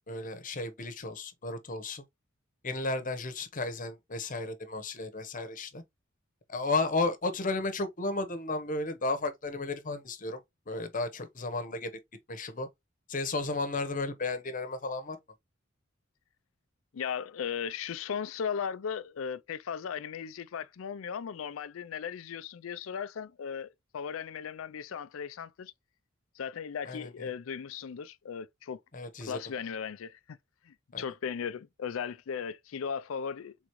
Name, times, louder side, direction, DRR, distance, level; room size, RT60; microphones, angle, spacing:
voice 1, 0.1-2.0 2.6-5.8 6.5-11.9 12.3-12.7 13.1-15.2 26.9-27.3 28.9-29.4 30.9-31.0, left 3 dB, 40° left, 1.0 m, -33 dB
voice 2, 16.9-25.7 26.4-28.8 29.2-30.4 30.6-33.5, left 7 dB, 75° left, 0.4 m, -37 dB
5.0 x 3.6 x 3.0 m
head